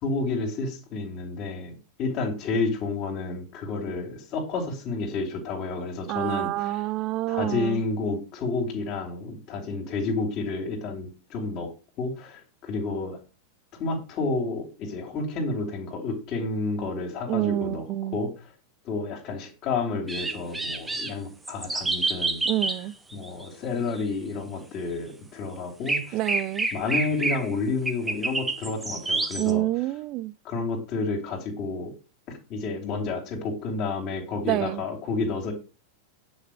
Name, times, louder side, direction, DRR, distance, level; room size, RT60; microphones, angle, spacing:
voice 1, 0.0-1.7 2.0-6.8 7.3-11.7 12.0-13.2 13.8-17.9 18.1-18.5 18.8-22.4 23.1-26.2 26.7-29.6 30.4-31.9 32.3-35.5, left 3 dB, 40° left, 3.7 m, -30 dB
voice 2, 6.1-7.8 17.3-18.2 22.5-22.9 26.1-26.7 29.4-30.3 34.5-34.8, right 15 dB, 40° right, 0.6 m, -27 dB
sound 1, 20.1-21.1 21.5-22.8 23.1-23.4 24.0-24.1 25.9-27.5 27.9-29.5, right 3 dB, 10° right, 1.7 m, -28 dB
10.0 x 6.3 x 7.7 m
figure-of-eight pair, 90°, 0 cm